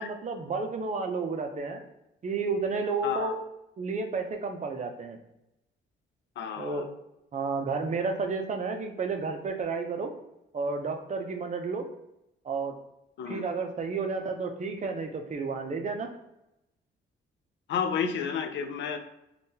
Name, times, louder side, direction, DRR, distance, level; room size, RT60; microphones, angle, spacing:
voice 1, 0.0-1.8 2.2-3.4 3.8-5.2 6.6-6.9 7.3-10.1 10.5-11.9 12.4-12.8 13.3-16.1, right 4 dB, 35° right, 4 dB, 0.5 m, -31 dB
voice 2, 3.0-3.3 6.4-6.8 13.2-13.4 17.7-19.0, left 7 dB, 65° left, 7 dB, 0.5 m, -31 dB
3.5 x 2.3 x 2.7 m, 0.88 s
cardioid pair, 90°, 20 cm